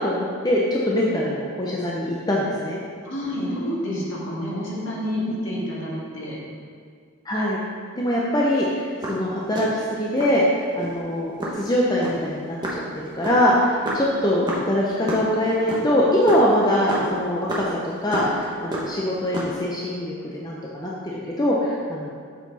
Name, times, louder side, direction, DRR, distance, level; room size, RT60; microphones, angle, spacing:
voice 1, 0.0-2.8 7.3-7.6 7.9-22.1, left 1 dB, 20° left, -4 dB, 0.6 m, -23 dB
voice 2, 0.9-1.2 3.0-6.4 13.7-13.9, equal, 60° left, -6 dB, 2.0 m, -29 dB
sound 1, 8.8-10.4 10.8-11.0 11.4-15.2 15.5-18.4 18.7-19.7, right 1 dB, 20° right, 1.0 m, -30 dB
7.3 x 5.9 x 4.1 m, 2.1 s
head